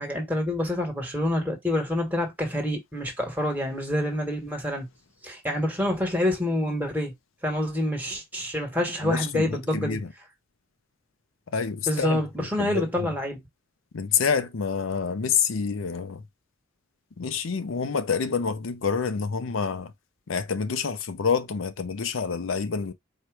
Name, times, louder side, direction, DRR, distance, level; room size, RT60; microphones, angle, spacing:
voice 1, 0.0-4.9 5.2-7.1 7.4-10.0 11.9-13.4, left 1 dB, 10° right, 1.3 m, -27 dB
voice 2, 9.0-10.1 11.5-12.2 12.6-13.1 13.9-16.2 17.2-19.9 20.3-22.9, left 6 dB, 70° left, 0.5 m, -27 dB
4.5 x 2.3 x 4.7 m
head